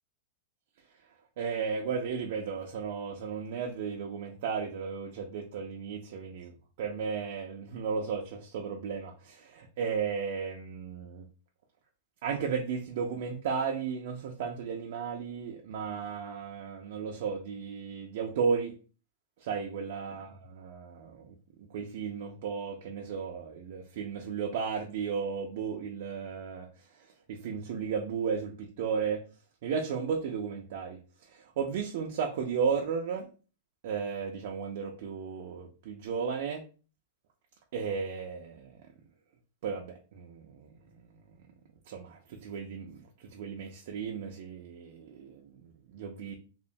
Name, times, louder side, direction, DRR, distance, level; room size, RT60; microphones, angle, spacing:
voice 1, 1.4-6.5 6.8-11.2 12.2-18.7 19.4-21.3 21.7-26.7 27.0-29.2 29.6-31.0 31.3-33.3 33.8-36.6 37.7-38.7 39.6-40.7 41.9-46.3, right 6 dB, 50° right, 2 dB, 0.3 m, -34 dB
2.9 x 2.0 x 2.5 m, 0.36 s
supercardioid pair, 175°, 0 cm